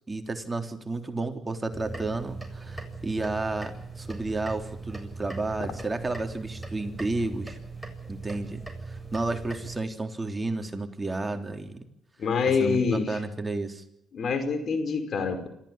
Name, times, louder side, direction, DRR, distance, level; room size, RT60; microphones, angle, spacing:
voice 1, 0.1-7.6 8.1-8.6 8.9-11.9 12.6-13.8, right 2 dB, 25° right, 5 dB, 3.5 m, -32 dB
sound 1, 1.7-9.8, right 3 dB, 5° right, 7.4 m, -40 dB
voice 2, 12.2-13.2 14.1-15.5, left 5 dB, 60° left, 8 dB, 5.0 m, -26 dB
26.5 x 15.0 x 9.9 m, 0.78 s
supercardioid pair, 55°, 0 cm